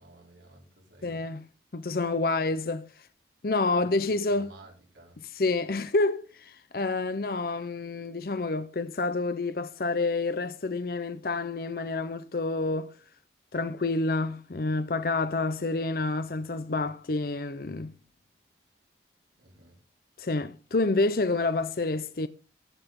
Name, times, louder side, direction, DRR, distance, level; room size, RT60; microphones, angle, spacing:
voice 1, 0.0-1.3 3.7-5.3 19.4-19.8, right 1 dB, 85° right, 4.8 m, -53 dB
voice 2, 1.0-1.4 1.7-3.1 3.4-4.5 5.4-13.0 13.5-17.9 20.2-22.3, left 3 dB, 55° left, 0.6 m, -28 dB
15.0 x 8.9 x 3.7 m
head